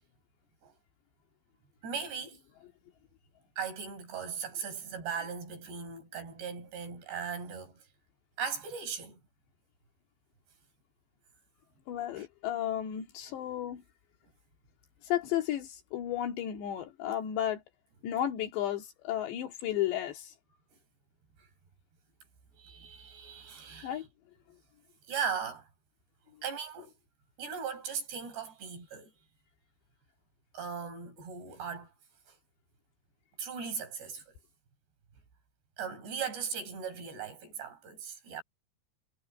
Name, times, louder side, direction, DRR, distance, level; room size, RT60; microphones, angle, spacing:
voice 1, 1.8-2.4 3.6-7.8 8.4-9.2 12.2-12.3 22.6-24.0 25.1-25.7 26.4-26.9 27.4-29.1 30.5-31.9 32.3-32.4 33.4-34.4 35.8-38.4, right 6 dB, 75° right, 7.6 m, -38 dB
voice 2, 11.9-13.8 15.0-17.6 18.0-20.3 23.8-24.1, left 11 dB, 80° left, 4.5 m, -33 dB
omnidirectional pair, 4.9 m